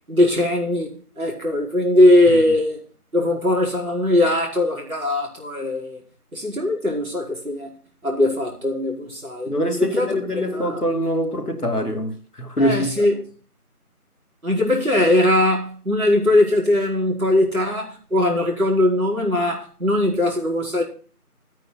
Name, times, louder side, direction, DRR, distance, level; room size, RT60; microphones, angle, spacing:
voice 1, 0.1-2.8 3.1-6.0 6.3-7.7 8.0-9.5 9.8-10.2 10.5-10.8 12.6-13.2 14.4-20.8, left 1 dB, 65° right, 4.8 m, -20 dB
voice 2, 9.5-13.1, equal, 90° left, 2.6 m, -24 dB
13.0 x 9.2 x 4.0 m
figure-of-eight pair, 170°, 45 cm